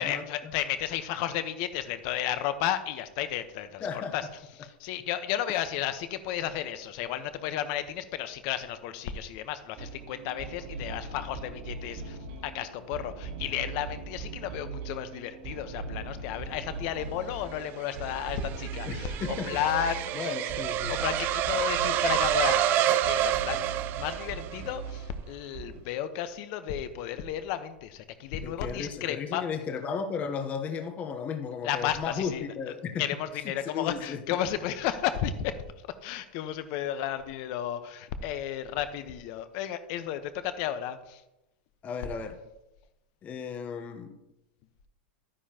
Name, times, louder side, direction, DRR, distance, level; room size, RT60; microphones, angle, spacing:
voice 1, 0.0-3.9 4.1-20.3 20.9-29.4 31.6-32.4 33.0-35.6 36.0-41.2, left 10 dB, 50° left, 11 dB, 1.0 m, -33 dB
voice 2, 3.8-4.1 18.9-19.5 20.1-21.0 28.4-33.0 33.6-34.2 41.8-42.4 43.2-44.2, left 6 dB, 25° left, 5 dB, 1.0 m, -34 dB
sound 1, 9.8-25.8, right 4 dB, 55° right, 2.2 m, -40 dB
sound 2, 17.6-24.7, right 12 dB, 35° right, 0.5 m, -28 dB
12.0 x 9.9 x 2.9 m, 0.95 s
hypercardioid pair, 130°, 6 cm